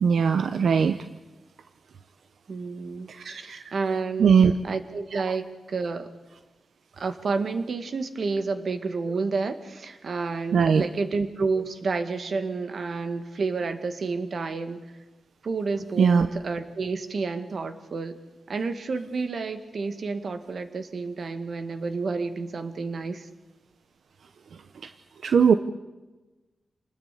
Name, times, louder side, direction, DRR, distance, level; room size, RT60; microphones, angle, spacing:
voice 1, 0.0-1.0 3.1-3.6 4.2-4.5 5.1-5.2 10.5-10.8 16.0-16.3 25.2-25.5, right 6 dB, 85° right, 9 dB, 0.8 m, -20 dB
voice 2, 2.5-6.1 7.0-14.8 15.4-18.2 18.5-23.3, right 4 dB, 65° right, 8 dB, 2.1 m, -30 dB
28.0 x 20.0 x 8.5 m, 1.1 s
wide cardioid pair, 115°, 0 cm